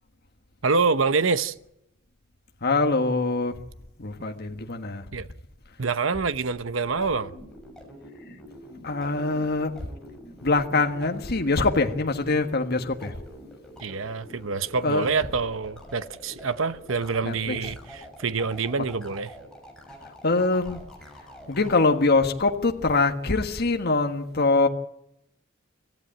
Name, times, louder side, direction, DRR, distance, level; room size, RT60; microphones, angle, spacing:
voice 1, 0.6-1.5 5.1-5.3 5.8-7.3 13.8-19.3, right 4 dB, 75° right, 0.9 m, -26 dB
voice 2, 2.6-3.5 4.0-5.0 8.8-9.7 10.4-13.1 14.8-15.1 17.2-17.6 20.2-20.8 21.5-24.7, left 3 dB, 55° left, 1.5 m, -23 dB
sound 1, 6.9-21.8, equal, 5° left, 6.3 m, -46 dB
26.0 x 14.5 x 9.0 m
head